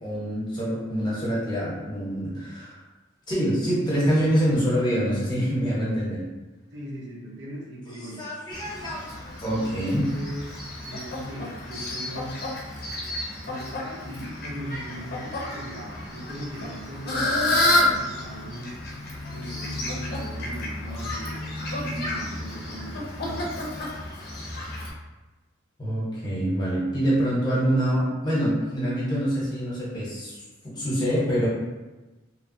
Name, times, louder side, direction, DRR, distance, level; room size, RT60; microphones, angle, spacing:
voice 1, 0.0-2.8 3.3-6.2 7.9-9.0 9.4-10.1 25.8-31.5, equal, 20° left, -7 dB, 0.9 m, -25 dB
voice 2, 6.7-8.2 10.1-12.4 13.4-18.7 19.3-23.6, equal, 65° right, -3 dB, 0.7 m, -39 dB
Fowl, 8.5-24.9, left 1 dB, 50° left, 0.6 m, -30 dB
2.9 x 2.3 x 2.6 m, 1.1 s
head